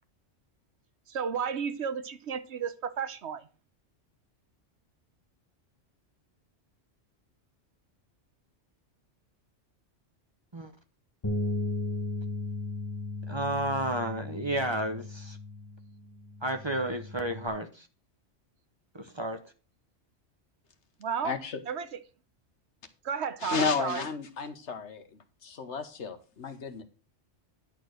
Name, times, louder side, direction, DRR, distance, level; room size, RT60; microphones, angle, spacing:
voice 1, 1.1-3.5 21.0-21.3 21.7-22.0 23.0-24.1, right 7 dB, 65° right, 1.0 m, -33 dB
Bass guitar, 11.2-17.5, left 2 dB, 20° left, 1.3 m, -36 dB
voice 2, 13.3-15.4 16.4-17.9 18.9-19.4, right 1 dB, 25° right, 0.9 m, -32 dB
voice 3, 21.2-21.6 23.4-25.0 25.4-26.8, left 5 dB, 70° left, 1.4 m, -32 dB
10.5 x 4.5 x 6.4 m
omnidirectional pair, 1.2 m